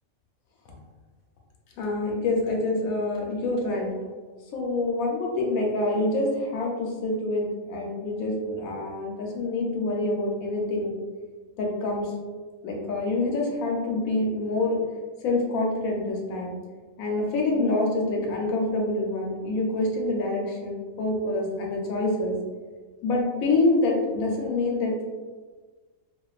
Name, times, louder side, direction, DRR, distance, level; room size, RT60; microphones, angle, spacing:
voice 1, 1.8-3.9 4.5-11.0 11.6-12.1 12.6-14.8 15.2-16.5 17.0-22.4 23.0-24.9, left 2 dB, 85° left, 0 dB, 1.1 m, -26 dB
2.5 x 2.3 x 2.3 m, 1.4 s
omnidirectional pair, 1.4 m